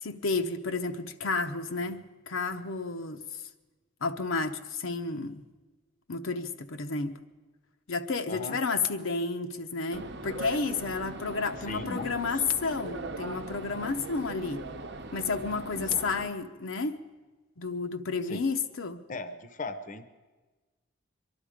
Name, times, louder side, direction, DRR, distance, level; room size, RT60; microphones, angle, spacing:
voice 1, 0.0-3.2 4.0-5.4 6.1-7.2 7.9-14.7 15.1-17.0 17.6-19.0, left 4 dB, 90° left, 0.8 m, -31 dB
sound 1, 9.9-16.3, right 2 dB, 60° right, 0.8 m, -40 dB
voice 2, 11.6-12.4 15.8-16.0 18.3-18.4 19.1-20.1, left 3 dB, 40° left, 0.7 m, -38 dB
23.5 x 11.5 x 5.0 m
head